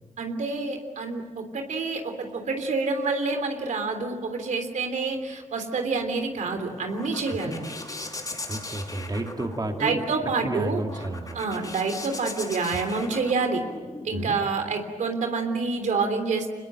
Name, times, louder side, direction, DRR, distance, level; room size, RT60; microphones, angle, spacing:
voice 1, 0.2-7.7 9.8-10.8 11.3-13.6 14.0-16.5, right 4 dB, 85° right, 5 dB, 3.4 m, -27 dB
sound 1, 6.2-14.1, left 2 dB, 30° left, 6.4 m, -39 dB
voice 2, 8.5-11.4 14.1-14.4, right 2 dB, 30° right, 3 dB, 2.5 m, -32 dB
26.0 x 21.0 x 9.0 m, 1.3 s
cardioid pair, 65°, 13 cm